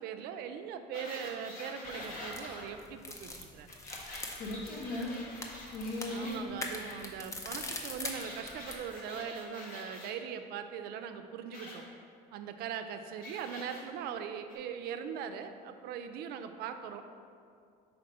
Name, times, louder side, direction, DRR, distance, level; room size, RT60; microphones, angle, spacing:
voice 1, 0.0-3.7 6.1-11.8 12.3-17.0, right 7 dB, 70° right, 8 dB, 0.4 m, -40 dB
sound 1, 0.9-2.6 3.7-6.4 8.1-10.1 11.5-11.8 13.2-13.8 14.5-14.6, left 2 dB, 55° left, 1.3 m, -46 dB
sound 2, 1.8-8.8, left 2 dB, 20° left, 0.5 m, -43 dB
voice 2, 4.3-5.2 5.7-6.5 6.7-7.1, left 2 dB, 80° left, -1 dB, 1.1 m, -38 dB
4.3 x 4.2 x 5.3 m, 2.4 s
cardioid pair, 145°, 17 cm